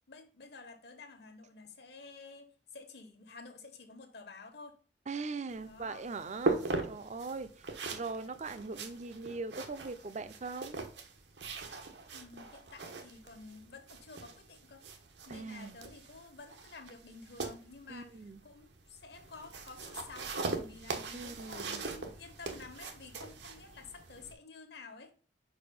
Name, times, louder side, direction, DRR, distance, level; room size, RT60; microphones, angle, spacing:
voice 1, 0.1-4.8 5.5-6.0 12.1-14.8 15.3-18.1 18.4-25.1, left 4 dB, 70° left, 1.3 m, -51 dB
voice 2, 5.1-10.8 15.3-15.8 17.9-18.4 21.1-21.8, right 4 dB, 45° right, 0.6 m, -41 dB
sound 1, 5.5-24.3, right 3 dB, 80° right, 1.1 m, -41 dB
5.0 x 4.8 x 5.4 m
head